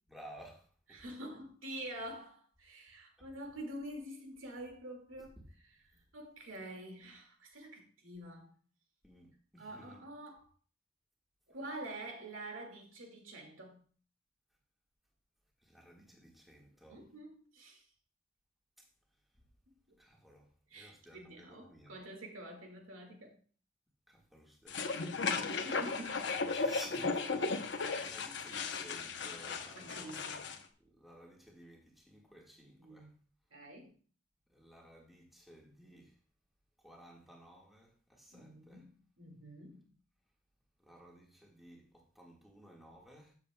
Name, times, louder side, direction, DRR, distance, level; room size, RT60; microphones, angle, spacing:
voice 1, 0.1-1.0 3.2-3.3 9.0-10.0 15.6-17.0 20.0-21.9 24.1-25.5 26.4-30.4 30.8-33.1 34.5-36.2 36.8-38.8 40.8-43.3, equal, ahead, 1.7 m, -56 dB
voice 2, 0.9-5.4 6.1-8.5 9.6-10.5 11.5-13.8 16.9-17.8 19.9-20.0 20.7-23.4 25.5-26.4 29.4-30.4 32.8-33.1 33.5-33.9 38.3-39.8, right 1 dB, 85° right, 2.2 m, -47 dB
sound 1, 24.7-30.6, left 4 dB, 60° left, 0.9 m, -36 dB
13.0 x 7.2 x 2.3 m
head